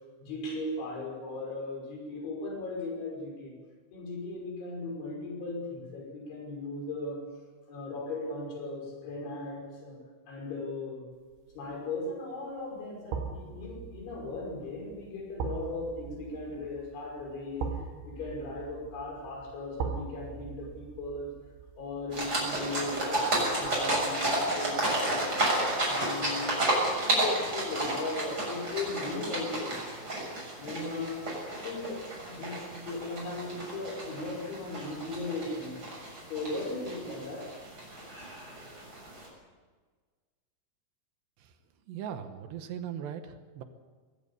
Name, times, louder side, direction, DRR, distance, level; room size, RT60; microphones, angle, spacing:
voice 1, 0.2-3.5 3.9-7.2 7.7-10.0 10.3-11.1 11.5-21.4 21.8-25.4 25.8-26.6 27.0-29.8 30.6-35.8 36.3-37.5, left 2 dB, 75° left, 0 dB, 8.0 m, -37 dB
sound 1, 11.3-11.7 13.1-24.1 24.4-24.6, right 5 dB, 90° right, 4.4 m, -41 dB
sound 2, 22.1-39.3, right 1 dB, 20° right, 7.1 m, -32 dB
voice 2, 41.9-43.6, right 9 dB, 75° right, 9 dB, 3.1 m, -39 dB
20.5 x 16.5 x 8.6 m, 1.4 s
omnidirectional pair, 5.4 m